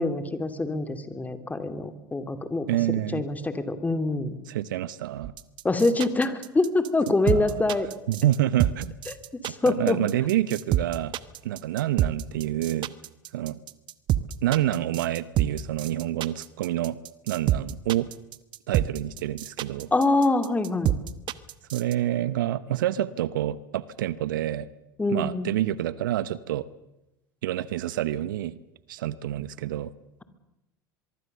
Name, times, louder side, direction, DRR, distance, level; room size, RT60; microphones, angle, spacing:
voice 1, 0.0-2.7 3.1-4.4 5.6-7.9 9.1-10.0 19.9-20.9 25.0-25.5, left 2 dB, 15° left, 10 dB, 2.6 m, -25 dB
voice 2, 2.7-3.2 4.5-5.3 7.3-7.7 8.1-9.0 9.6-11.1 11.4-13.0 13.3-13.6 14.4-18.1 18.7-19.9 21.7-24.7 25.1-26.7 27.4-28.6 28.9-29.9, right 13 dB, 75° right, 19 dB, 0.8 m, -28 dB
sound 1, 5.2-21.9, right 12 dB, 45° right, 1.1 m, -27 dB
23.5 x 23.5 x 6.8 m, 0.92 s
hypercardioid pair, 75°, 11 cm